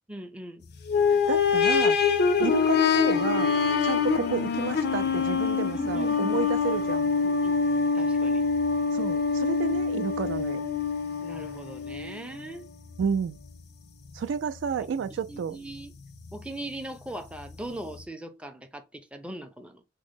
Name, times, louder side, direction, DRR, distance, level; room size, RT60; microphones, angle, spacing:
voice 1, 0.1-0.7 5.7-6.4 7.2-7.6 7.9-8.4 11.2-12.7 15.1-15.9 16.3-19.8, right 1 dB, 5° right, 0.4 m, -40 dB
sound 1, 0.9-12.4 13.0-13.1 14.1-14.2, left 5 dB, 55° left, 0.4 m, -25 dB
voice 2, 1.1-2.0 2.4-3.5 3.8-7.1 8.9-10.7 13.0-13.4 14.1-15.6, right 6 dB, 80° right, 0.3 m, -31 dB
3.6 x 2.0 x 3.5 m
head